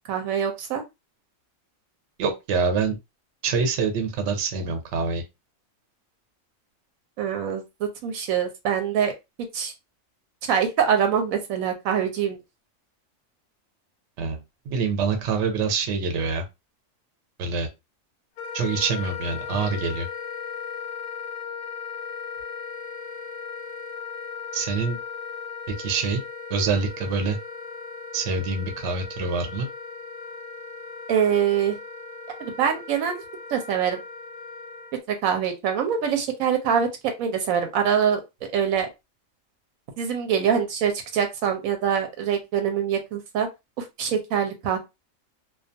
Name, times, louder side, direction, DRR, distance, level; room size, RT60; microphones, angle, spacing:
voice 1, 0.1-0.8 7.2-9.1 9.5-9.7 10.5-12.4 31.1-31.8 32.4-33.2 33.5-34.0 35.2-36.9 37.2-38.2 38.5-38.9 40.0-43.5 43.8-44.8, right 8 dB, 85° right, 1.0 m, -24 dB
voice 2, 2.2-3.0 3.4-5.2 14.2-14.4 14.7-16.4 17.4-17.7 18.5-20.1 24.5-25.0 25.7-26.2 26.5-27.4 28.1-29.7, right 5 dB, 65° right, 0.8 m, -25 dB
Wind instrument woodwind instrument, 18.4-34.9, left 5 dB, 90° left, 1.0 m, -37 dB
2.3 x 2.3 x 2.5 m
omnidirectional pair, 1.4 m